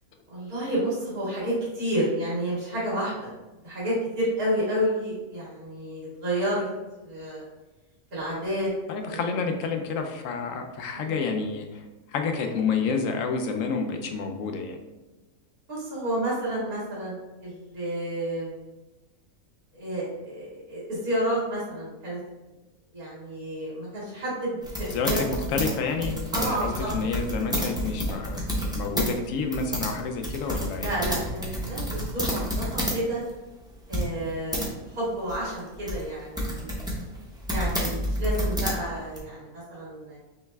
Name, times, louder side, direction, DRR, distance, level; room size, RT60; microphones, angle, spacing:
voice 1, 0.3-3.3 3.6-6.7 7.0-7.4 8.1-8.7 9.1-9.3 10.9-11.3 15.7-18.5 19.7-22.2 22.9-25.2 26.3-26.9 30.8-33.2 33.9-36.8 37.5-40.2, right 1 dB, 85° right, -9 dB, 2.1 m, -30 dB
voice 2, 8.9-11.8 12.1-14.8 24.9-28.4 28.7-30.9, left 5 dB, 70° left, 4 dB, 0.9 m, -29 dB
sound 1, 24.6-29.1 29.4-33.0 33.3-33.4 33.9-34.7 35.3-39.2, equal, 5° right, 0.5 m, -29 dB
5.5 x 2.1 x 3.3 m, 1.1 s
omnidirectional pair, 1.5 m